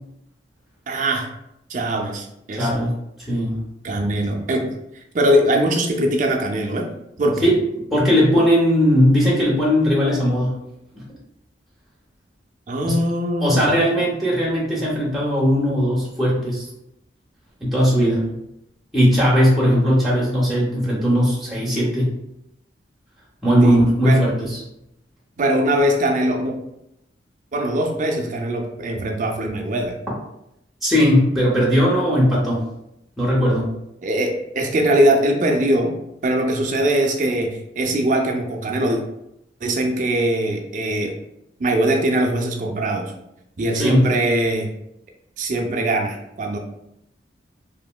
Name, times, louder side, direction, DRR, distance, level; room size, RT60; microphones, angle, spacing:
voice 1, 0.9-1.3 1.7-2.7 3.8-4.7 5.1-6.9 7.2-7.5 12.7-13.7 23.6-24.2 25.4-26.6 27.5-29.9 34.0-35.9 36.2-39.0 39.6-41.1 41.6-43.1 43.6-44.7 45.4-46.6, right 1 dB, 45° right, 2 dB, 0.4 m, -21 dB
voice 2, 2.5-3.0 3.3-3.6 7.4-7.6 7.9-10.6 12.8-13.0 13.4-16.7 17.6-18.3 18.9-22.1 23.4-24.6 30.8-32.6 33.2-33.7 43.7-44.1, equal, ahead, -6 dB, 0.6 m, -18 dB
2.8 x 2.5 x 2.2 m, 0.82 s
head